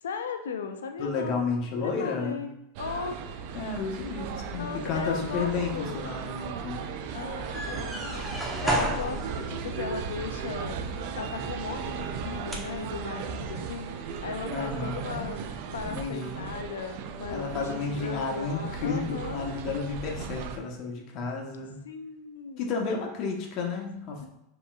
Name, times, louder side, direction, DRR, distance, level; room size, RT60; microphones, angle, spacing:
voice 1, 0.0-3.2 4.6-6.1 7.1-10.8 11.1-15.4 15.7-19.5 21.8-22.7 24.2-24.3, left 6 dB, 85° left, 7 dB, 0.4 m, -37 dB
voice 2, 1.0-2.5 3.5-6.8 14.5-15.3 15.8-16.5 17.3-21.8 22.6-24.3, left 4 dB, 55° left, 1 dB, 1.0 m, -32 dB
sound 1, 2.8-20.6, right 6 dB, 60° right, 0.4 m, -36 dB
sound 2, 7.3-12.8, equal, ahead, 1.2 m, -35 dB
5.4 x 3.0 x 2.4 m, 0.85 s
hypercardioid pair, 90°, 0 cm